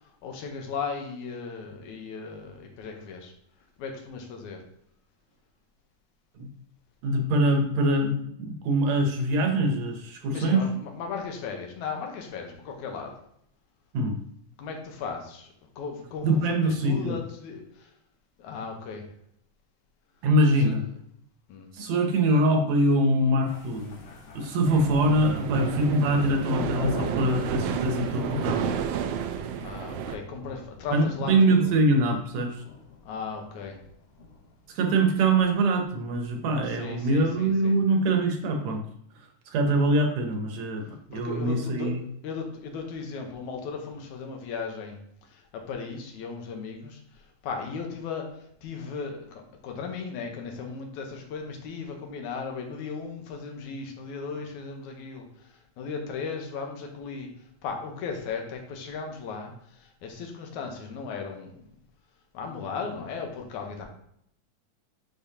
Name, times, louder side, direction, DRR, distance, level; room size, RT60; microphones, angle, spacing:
voice 1, 0.2-3.3 3.8-4.6 10.2-13.1 14.6-17.9 18.4-19.1 20.6-20.7 21.5-21.7 29.6-31.7 33.0-33.8 36.6-37.7 41.1-45.0 45.3-57.3 57.6-61.6 62.3-63.9, left 5 dB, 80° left, 3 dB, 2.4 m, -36 dB
voice 2, 7.0-10.6 13.9-14.2 16.2-17.2 20.2-20.8 21.7-24.0 24.4-28.7 30.9-32.6 34.8-38.8 39.5-40.8 41.1-42.0, right 1 dB, 70° right, 3 dB, 2.0 m, -23 dB
sound 1, 23.5-37.2, left 3 dB, 65° left, 1.9 m, -42 dB
sound 2, 24.6-30.2, right 9 dB, 90° right, 1.4 m, -31 dB
10.0 x 4.1 x 2.8 m, 0.70 s
omnidirectional pair, 3.4 m